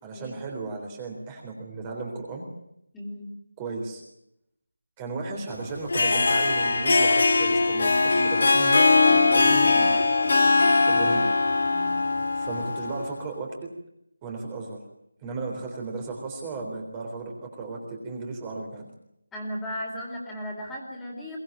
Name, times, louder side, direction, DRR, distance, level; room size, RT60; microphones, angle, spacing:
voice 1, 0.0-2.5 3.6-4.0 5.0-10.1 10.7-11.3 12.4-13.5 14.2-14.8 15.2-18.8, right 3 dB, 15° right, 1 dB, 3.8 m, -35 dB
voice 2, 2.9-3.4 11.7-12.2 19.3-21.4, equal, 5° left, -2 dB, 4.3 m, -36 dB
Harp, 5.7-13.1, left 3 dB, 55° left, 3.6 m, -21 dB
23.5 x 19.0 x 8.9 m, 0.79 s
figure-of-eight pair, 165°, 0 cm